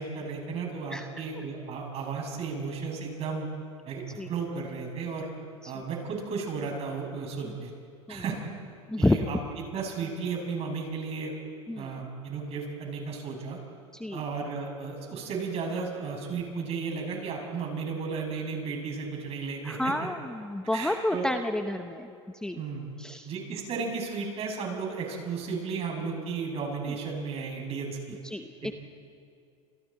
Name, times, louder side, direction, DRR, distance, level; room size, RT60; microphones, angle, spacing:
voice 1, 0.0-3.5 3.8-5.3 5.7-7.7 8.1-8.4 9.0-9.4 9.7-11.3 11.8-13.6 14.1-20.1 20.7-21.3 22.6-22.9 23.3-28.2 28.6-28.7, right 5 dB, 40° right, 1 dB, 6.7 m, -34 dB
voice 2, 8.9-9.3 11.7-12.0 13.9-14.2 19.6-22.6 23.0-23.3 28.2-28.7, left 1 dB, 5° left, 7 dB, 0.9 m, -30 dB
29.5 x 27.5 x 4.3 m, 2.4 s
hypercardioid pair, 95°, 16 cm